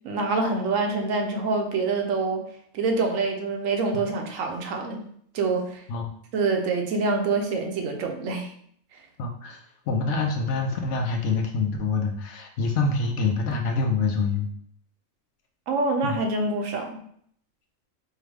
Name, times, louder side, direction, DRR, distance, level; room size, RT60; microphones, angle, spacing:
voice 1, 0.0-2.4 2.7-5.0 5.3-5.8 6.3-8.5 8.9-9.0 15.7-17.0, right 3 dB, 70° right, 3 dB, 1.0 m, -26 dB
voice 2, 9.2-14.5 16.0-16.2, left 4 dB, 65° left, 2 dB, 0.8 m, -26 dB
4.6 x 2.3 x 3.3 m, 0.64 s
omnidirectional pair, 1.5 m